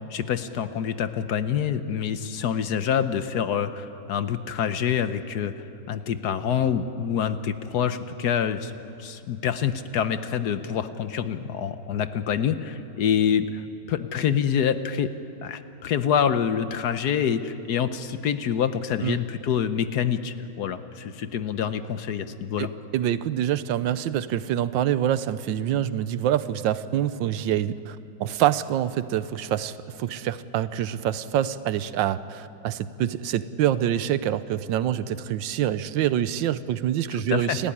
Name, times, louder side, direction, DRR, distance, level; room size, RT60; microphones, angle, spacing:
voice 1, 0.1-5.5 5.9-8.7 9.0-13.6 13.9-15.1 15.4-22.7 37.3-37.6, left 8 dB, 65° left, 11 dB, 1.3 m, -26 dB
voice 2, 22.9-37.7, right 11 dB, 85° right, 15 dB, 1.4 m, -26 dB
29.0 x 14.0 x 9.9 m, 2.8 s
omnidirectional pair, 2.0 m